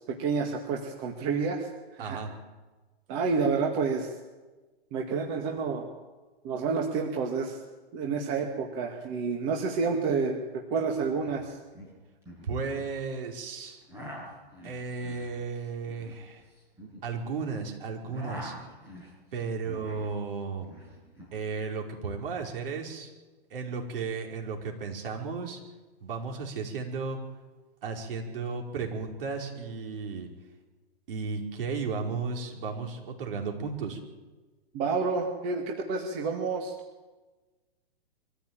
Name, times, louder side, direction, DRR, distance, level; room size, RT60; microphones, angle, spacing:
voice 1, 0.0-1.7 2.0-2.2 3.1-4.1 4.9-5.9 6.4-7.6 7.9-11.6 34.7-36.7, right 5 dB, 30° right, 1 dB, 2.1 m, -29 dB
voice 2, 2.0-2.3 12.4-13.8 14.6-16.4 17.0-18.5 19.3-20.7 21.3-23.1 23.5-25.6 26.0-27.2 27.8-30.3 31.1-34.0, right 4 dB, 60° right, 1 dB, 5.1 m, -34 dB
sound 1, 10.7-10.8 11.1-11.4 11.7-12.9 13.6-17.6 17.9-20.1 20.4-21.4, equal, 10° right, 7.1 m, -45 dB
24.0 x 15.0 x 9.1 m, 1.2 s
hypercardioid pair, 160°, 32 cm